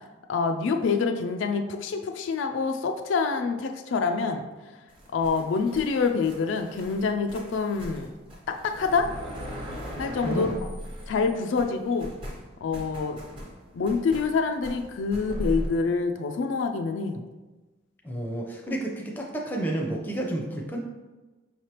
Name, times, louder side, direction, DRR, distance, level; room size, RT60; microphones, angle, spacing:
voice 1, 0.3-4.5 5.1-8.1 8.5-9.1 10.0-10.5 11.1-12.1 12.6-13.2 13.7-17.2, left 4 dB, 70° left, 5 dB, 0.3 m, -26 dB
sound 1, 4.9-11.3 11.5-15.7, equal, 25° right, 0.9 m, -38 dB
voice 2, 10.2-10.6 18.0-20.8, right 1 dB, 10° left, -1 dB, 0.5 m, -30 dB
5.5 x 3.2 x 2.9 m, 1.2 s
head